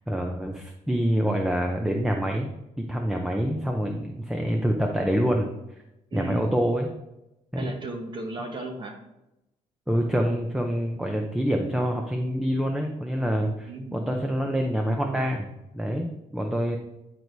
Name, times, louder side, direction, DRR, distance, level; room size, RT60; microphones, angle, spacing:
voice 1, 0.1-2.5 2.8-5.5 6.1-6.9 7.5-7.8 9.9-16.8, equal, 5° right, 2 dB, 0.5 m, -26 dB
voice 2, 6.1-6.5 7.6-9.0 13.6-14.1, right 2 dB, 35° right, 3 dB, 1.1 m, -35 dB
9.7 x 4.6 x 2.7 m, 0.91 s
cardioid pair, 140°, 13 cm